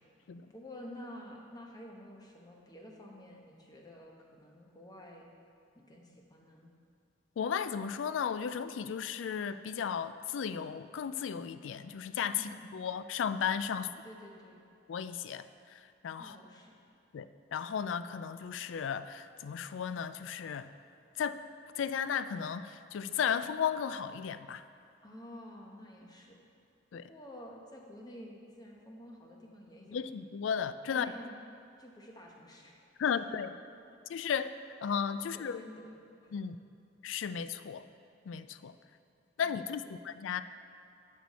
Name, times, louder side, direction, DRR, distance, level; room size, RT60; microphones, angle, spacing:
voice 1, 0.5-5.3 5.7-6.7 12.4-12.6 13.7-14.6 16.2-16.7 25.0-26.4 27.1-30.0 30.9-31.3 31.8-32.8 33.0-33.1 35.2-36.4 39.4-40.0, left 1 dB, 20° left, 0 dB, 1.0 m, -50 dB
voice 2, 7.4-13.9 14.9-16.4 17.1-20.7 21.2-21.4 21.8-24.6 26.9-27.0 29.9-31.1 33.0-33.5 34.1-34.5 34.8-35.6 36.3-36.6 37.0-37.9 38.3-38.7 39.4-40.4, left 7 dB, 75° left, 13 dB, 0.3 m, -35 dB
10.0 x 6.4 x 4.1 m, 2.6 s
head